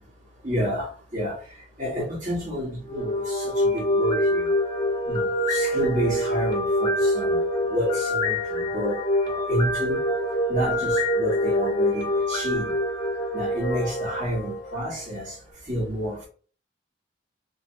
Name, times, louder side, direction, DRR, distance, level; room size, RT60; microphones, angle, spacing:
voice 1, 0.4-4.5 5.1-10.0 10.5-12.8 13.3-15.4 15.6-16.3, equal, 45° right, -5 dB, 1.5 m, -30 dB
sound 1, 2.9-15.0, left 1 dB, 20° left, 0.6 m, -25 dB
3.0 x 2.5 x 2.7 m, 0.42 s
head